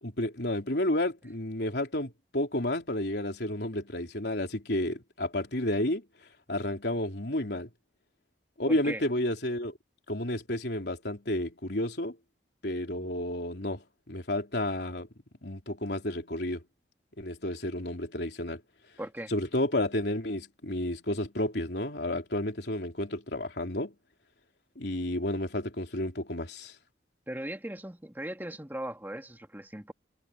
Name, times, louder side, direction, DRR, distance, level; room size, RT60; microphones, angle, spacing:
voice 1, 0.0-6.0 6.5-7.7 8.6-9.8 10.1-12.2 12.6-15.1 15.4-16.7 17.2-18.6 19.3-24.0 24.8-26.7, left 1 dB, 65° left, 3.6 m, -31 dB
voice 2, 8.7-9.0 19.0-19.3 27.3-29.9, right 1 dB, 10° right, 2.4 m, -38 dB
head